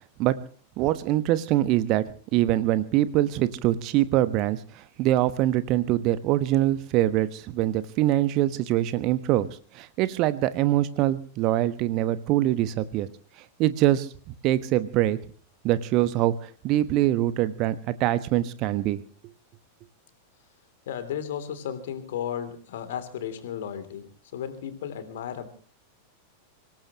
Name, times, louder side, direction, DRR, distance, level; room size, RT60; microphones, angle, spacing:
voice 1, 0.8-2.0 2.3-9.5 9.7-13.1 13.6-14.1 14.4-15.2 15.6-19.0, right 14 dB, 40° right, 14 dB, 1.2 m, -24 dB
voice 2, 20.9-25.5, left 9 dB, 55° left, 10 dB, 3.1 m, -34 dB
25.5 x 18.0 x 3.0 m, 0.42 s
figure-of-eight pair, 90°, 0 cm